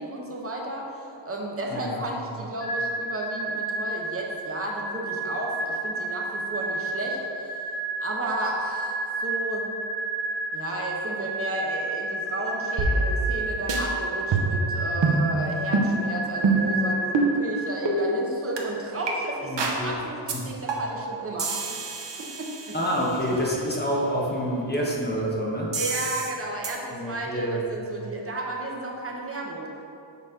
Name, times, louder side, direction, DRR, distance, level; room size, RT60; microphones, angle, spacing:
voice 1, 0.0-9.7 10.5-21.8 22.1-22.7 25.7-29.7, right 1 dB, 30° right, -1 dB, 0.8 m, -33 dB
voice 2, 1.7-2.0 19.4-19.9 20.3-20.5 22.7-25.8 26.9-27.6, equal, 20° left, -4 dB, 0.9 m, -27 dB
sound 1, 2.6-18.2, right 2 dB, 65° left, 1.3 m, -31 dB
sound 2, 12.8-13.4 13.7-13.8 14.3-14.7 15.0-15.2 15.7-15.9 16.4-16.7 17.1-17.3 17.9-18.0 18.6-18.7 19.1-19.2 19.6-19.8 20.3-20.4 20.7-21.0 21.4-23.2 25.7-26.3 26.6-26.7, right 3 dB, 60° right, 0.9 m, -25 dB
6.8 x 4.1 x 4.9 m, 2.7 s
wide cardioid pair, 180°, 48 cm